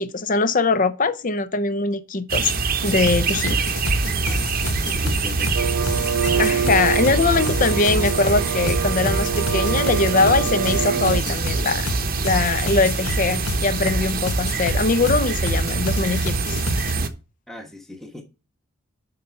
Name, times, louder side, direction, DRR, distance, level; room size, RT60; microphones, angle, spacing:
voice 1, 0.0-2.5 2.8-3.6 6.4-11.9 12.2-16.6, left 3 dB, 35° left, 0.6 m, -22 dB
sound 1, 2.3-17.1, right 4 dB, 40° right, 0.8 m, -25 dB
sound 2, 2.9-16.9, left 1 dB, 80° left, 1.2 m, -28 dB
voice 2, 4.3-5.8 17.5-18.2, left 1 dB, ahead, 1.0 m, -39 dB
sound 3, 5.5-11.2, right 7 dB, 90° right, 0.3 m, -26 dB
7.7 x 5.4 x 5.6 m
head